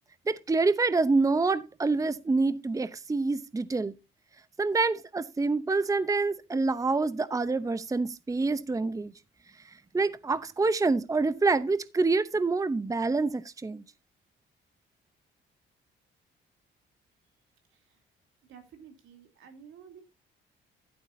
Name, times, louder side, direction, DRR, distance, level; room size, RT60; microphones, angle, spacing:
voice 1, 0.3-3.9 4.6-9.1 9.9-13.8, right 3 dB, 15° right, 0.7 m, -26 dB
voice 2, 18.5-20.0, right 7 dB, 80° right, 3.2 m, -52 dB
12.0 x 11.0 x 2.7 m
cardioid pair, 90°, 20 cm